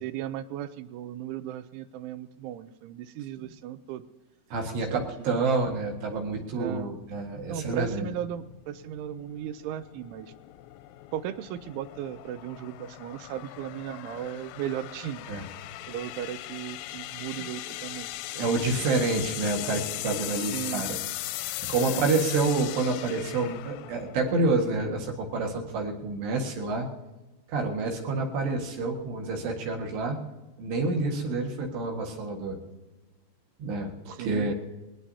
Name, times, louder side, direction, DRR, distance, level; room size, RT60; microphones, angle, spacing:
voice 1, 0.0-4.1 4.9-5.6 6.6-6.9 7.5-10.3 11.1-15.3 15.9-18.1 20.3-20.8 21.9-22.1 34.1-34.5, right 11 dB, 80° right, 13 dB, 2.9 m, -36 dB
voice 2, 4.5-8.1 15.3-15.5 18.3-21.0 21.6-26.9 27.5-30.2 30.6-32.6 33.6-34.5, right 3 dB, 65° right, 2 dB, 3.6 m, -28 dB
sound 1, 6.5-25.3, left 16 dB, 90° left, 3.2 m, -39 dB
20.5 x 20.0 x 2.8 m, 1.1 s
omnidirectional pair, 5.7 m